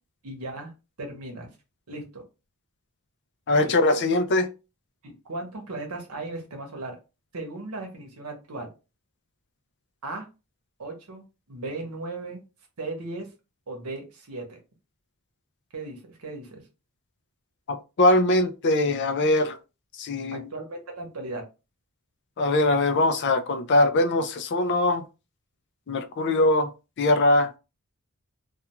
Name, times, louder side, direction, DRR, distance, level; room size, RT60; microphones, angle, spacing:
voice 1, 0.2-0.7 1.0-1.5 1.9-2.2 3.5-3.7 4.1-4.2 5.0-7.0 7.3-8.7 10.0-10.3 10.8-12.4 12.8-13.3 13.7-14.6 15.7-16.6 20.3-21.4, right 2 dB, 80° right, 0.9 m, -36 dB
voice 2, 3.5-4.5 17.7-19.6 20.0-20.4 22.4-25.0 25.9-26.7 27.0-27.5, left 2 dB, 50° left, 0.4 m, -22 dB
2.3 x 2.3 x 2.9 m
head